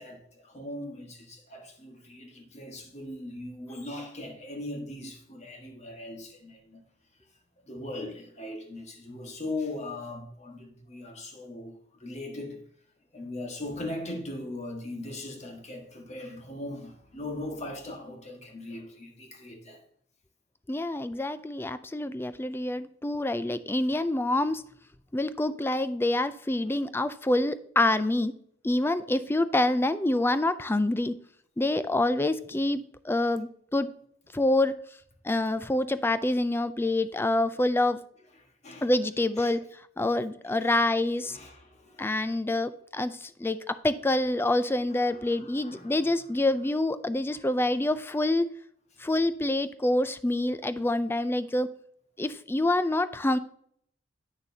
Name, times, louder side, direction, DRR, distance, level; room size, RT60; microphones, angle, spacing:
voice 1, 0.0-6.8 7.6-12.6 13.1-19.8 26.6-26.9 38.4-38.9 39.4-39.6 40.6-40.8 41.3-42.2 44.9-46.1 47.3-47.7, left 1 dB, 35° left, 1.4 m, -40 dB
voice 2, 20.7-24.6 25.1-28.3 28.6-31.2 31.6-33.9 34.3-34.8 35.2-38.0 38.8-39.6 40.0-41.4 42.0-48.5 49.0-51.7 52.2-53.4, left 1 dB, 10° left, 0.4 m, -26 dB
8.9 x 6.4 x 2.7 m
head